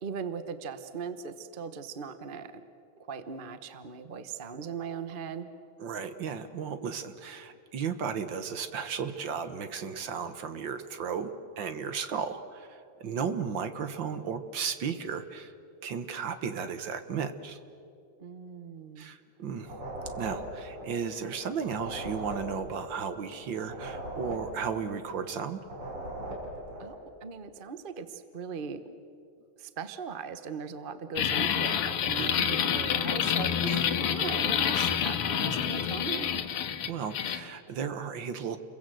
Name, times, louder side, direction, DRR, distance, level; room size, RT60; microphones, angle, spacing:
voice 1, 0.0-2.6 3.1-5.5 13.0-13.4 18.2-19.1 26.8-28.8 29.6-36.4, right 5 dB, 35° right, 10 dB, 0.9 m, -39 dB
voice 2, 5.8-15.5 15.8-17.6 19.0-19.7 20.2-25.6 32.2-32.5 33.6-33.9 36.9-38.6, right 6 dB, 60° right, 10 dB, 1.8 m, -35 dB
sound 1, 19.6-27.0, right 1 dB, 80° right, 6.0 m, -40 dB
sound 2, 31.2-37.4, left 9 dB, 85° left, 2.0 m, -28 dB
30.0 x 22.5 x 7.7 m, 2.5 s
omnidirectional pair, 2.4 m